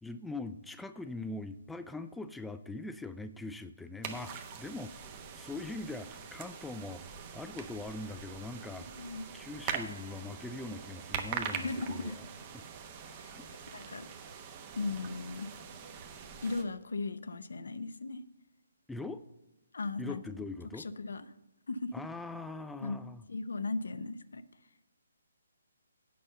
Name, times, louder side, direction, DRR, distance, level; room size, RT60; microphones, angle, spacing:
voice 1, 0.0-5.1 5.3-7.0 7.3-9.1 9.3-12.3 12.5-12.6 13.3-13.4 18.9-19.2 20.0-20.9 21.9-23.2, left 2 dB, 5° left, 9 dB, 0.3 m, -42 dB
sound 1, 4.0-16.6, right 7 dB, 30° right, 1.0 m, -43 dB
voice 2, 8.8-9.3 11.5-12.2 13.2-13.4 13.7-14.1 14.7-15.5 16.4-18.2 19.7-20.2 20.6-21.3 21.7-22.0 22.8-23.0 23.3-24.4, left 3 dB, 70° left, 12 dB, 0.6 m, -37 dB
8.6 x 5.4 x 7.7 m, 0.98 s
figure-of-eight pair, 145°, 0 cm